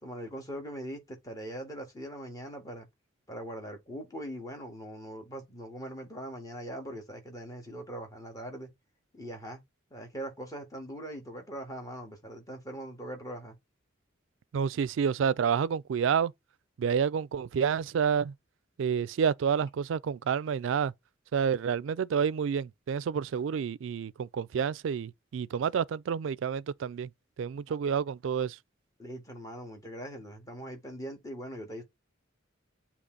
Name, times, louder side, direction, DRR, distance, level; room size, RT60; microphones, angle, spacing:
voice 1, 0.0-2.9 3.3-8.7 9.1-9.6 9.9-13.6 27.7-27.8 29.0-31.8, right 1 dB, 20° left, 1.7 m, -41 dB
voice 2, 14.5-16.3 16.8-18.3 18.8-20.9 21.3-27.1 27.4-28.6, right 7 dB, 75° right, 0.3 m, -29 dB
8.3 x 3.0 x 3.8 m
head